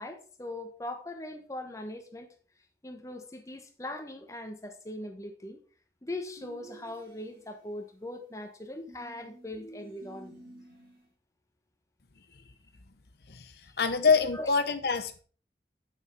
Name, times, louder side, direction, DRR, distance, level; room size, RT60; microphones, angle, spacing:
voice 1, 0.0-2.3 2.8-5.6 6.0-10.4 13.7-13.8 14.3-14.5, left 1 dB, 15° left, 1.1 m, -40 dB
sound 1, 6.4-7.6 8.9-11.1, right 1 dB, 55° right, 2.4 m, -51 dB
voice 2, 13.3-15.2, left 5 dB, 60° left, 0.9 m, -26 dB
7.5 x 6.3 x 4.5 m
head